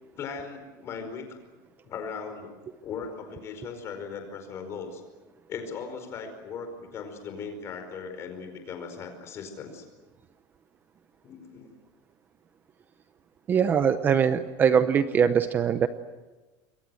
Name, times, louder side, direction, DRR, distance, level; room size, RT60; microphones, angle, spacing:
voice 1, 0.2-1.4 1.8-2.5 2.8-5.0 5.5-9.8 11.2-11.7, left 5 dB, 30° left, 6 dB, 4.9 m, -38 dB
voice 2, 13.5-15.9, right 7 dB, 20° right, 11 dB, 0.7 m, -22 dB
28.0 x 23.0 x 7.8 m, 1.2 s
cardioid pair, 180°, 9 cm